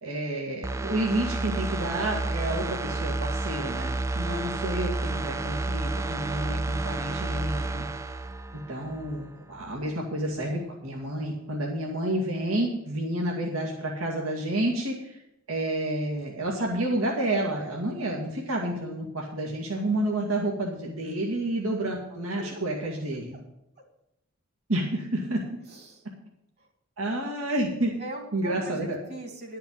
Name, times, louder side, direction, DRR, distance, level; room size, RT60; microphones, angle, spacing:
voice 1, 0.0-7.8 8.7-15.2 15.5-23.4 24.7-25.4 27.0-27.9 28.3-29.0, right 1 dB, 85° right, -1 dB, 2.0 m, -30 dB
sound 1, 0.6-9.3 9.7-9.8, right 2 dB, 15° right, 0.3 m, -31 dB
voice 2, 25.7-26.0 28.0-29.6, right 1 dB, 50° right, 3 dB, 2.8 m, -40 dB
11.5 x 5.8 x 8.8 m, 0.84 s
head